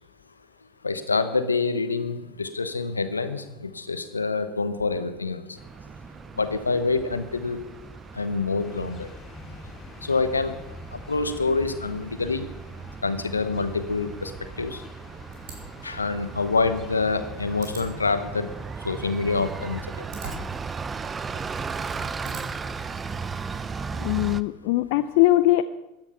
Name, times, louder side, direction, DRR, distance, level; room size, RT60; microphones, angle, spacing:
voice 1, 0.8-5.6 6.4-7.6 8.1-9.1 10.0-10.5 10.9-12.5 13.0-14.3 14.6-14.8 15.8-18.5 18.8-19.9, left 4 dB, 90° left, 10 dB, 1.0 m, -26 dB
Bus, 5.6-24.4, right 5 dB, 25° right, 0.6 m, -37 dB
sound 1, 8.6-24.0, left 5 dB, 35° left, 3.2 m, -48 dB
sound 2, 15.3-22.8, right 3 dB, 60° right, 4.4 m, -45 dB
voice 2, 24.0-25.6, left 16 dB, 65° left, 12 dB, 0.5 m, -21 dB
15.5 x 11.0 x 5.7 m, 0.95 s
figure-of-eight pair, 75°, 0 cm